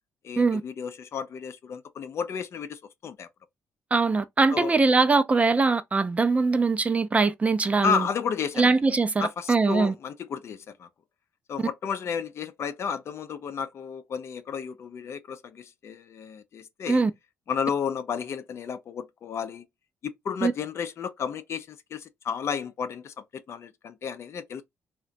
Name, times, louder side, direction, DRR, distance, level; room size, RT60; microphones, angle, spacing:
voice 1, 0.2-3.3 4.5-4.7 7.8-8.7 9.2-10.9 11.5-17.0 17.5-19.6 20.0-24.6, left 7 dB, 55° left, 0.4 m, -32 dB
voice 2, 3.9-8.0 8.6-9.9 16.9-17.1 20.4-20.5, right 4 dB, 25° right, 0.4 m, -22 dB
2.7 x 2.1 x 2.5 m
supercardioid pair, 65°, 5 cm